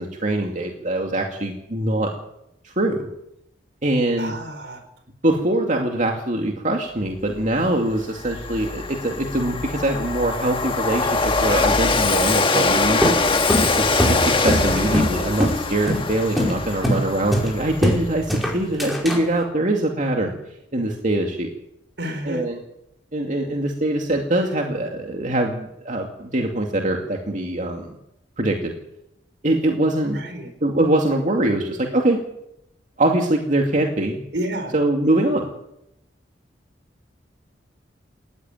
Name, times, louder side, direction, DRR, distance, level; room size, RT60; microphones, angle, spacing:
voice 1, 0.0-2.1 2.6-3.1 3.8-4.3 5.2-13.0 13.6-20.3 20.7-21.5 22.3-22.6 23.1-27.9 28.4-28.7 29.4-30.2 30.6-32.2 33.0-34.2 34.7-35.5, right 1 dB, 45° right, 2 dB, 2.5 m, -23 dB
voice 2, 4.2-4.8 14.6-15.1 22.0-22.5 30.1-30.5 34.3-34.7, right 1 dB, 70° right, 8 dB, 4.5 m, -30 dB
Train, 7.5-7.6 7.9-18.4, left 3 dB, 30° left, 1.6 m, -23 dB
sound 1, 13.0-15.2 15.4-15.6 15.9-16.1 16.4-16.6 16.8-17.0 17.3-18.0 18.3-19.2, equal, ahead, 5.0 m, -21 dB
19.0 x 15.0 x 9.1 m, 0.83 s
head